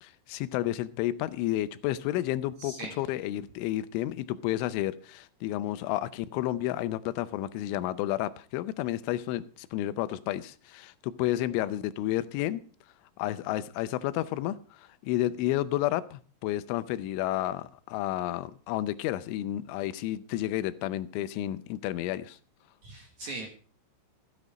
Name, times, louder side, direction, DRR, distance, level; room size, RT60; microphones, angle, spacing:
voice 1, 0.0-12.6 13.2-22.4, left 14 dB, 90° left, 14 dB, 3.2 m, -31 dB
voice 2, 2.6-3.0 22.8-23.5, right 2 dB, 60° right, 2 dB, 2.0 m, -39 dB
13.5 x 9.5 x 4.9 m, 0.40 s
omnidirectional pair, 5.4 m